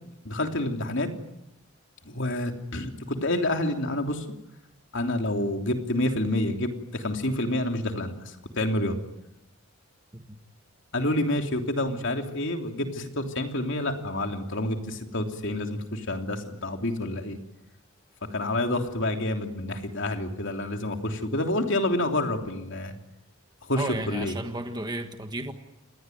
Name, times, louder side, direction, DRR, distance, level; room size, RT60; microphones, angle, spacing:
voice 1, 0.2-1.1 2.0-4.2 4.9-9.0 10.9-17.4 18.3-23.0 23.6-24.4, left 1 dB, 55° left, 4 dB, 3.2 m, -28 dB
voice 2, 23.8-25.5, right 2 dB, 20° right, 6 dB, 1.6 m, -34 dB
28.5 x 20.5 x 9.4 m, 0.86 s
head